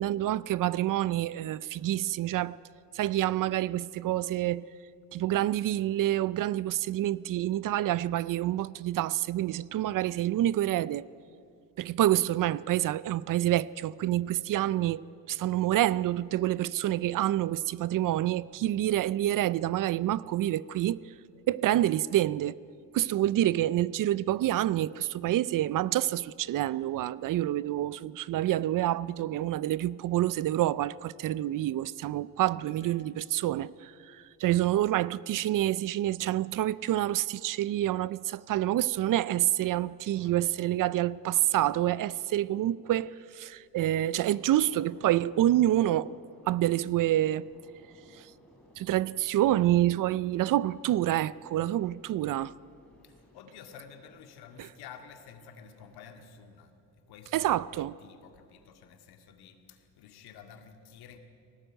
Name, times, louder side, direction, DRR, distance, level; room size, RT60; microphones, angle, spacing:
voice 1, 0.0-2.6 2.9-4.6 5.1-11.1 11.8-15.0 15.3-21.0 21.5-22.6 22.9-46.1 46.5-47.5 48.8-52.5 57.3-57.9, right 13 dB, 55° right, 0.6 m, -27 dB
voice 2, 40.1-40.8 53.0-56.7 57.1-61.2, left 7 dB, 75° left, 2.2 m, -51 dB
sound 1, 44.3-56.3, left 1 dB, 5° left, 4.6 m, -58 dB
19.5 x 18.0 x 9.0 m
cardioid pair, 95°, 38 cm